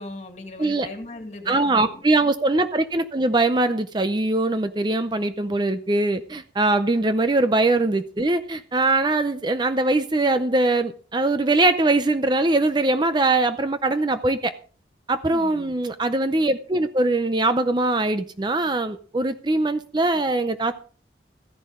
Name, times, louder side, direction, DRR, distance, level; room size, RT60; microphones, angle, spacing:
voice 1, 0.0-2.0 7.0-7.1 15.3-15.7, left 2 dB, 40° left, 4 dB, 2.3 m, -38 dB
voice 2, 1.5-14.5 15.1-20.7, right 2 dB, 25° right, 10 dB, 0.5 m, -22 dB
14.5 x 10.5 x 3.7 m, 0.41 s
head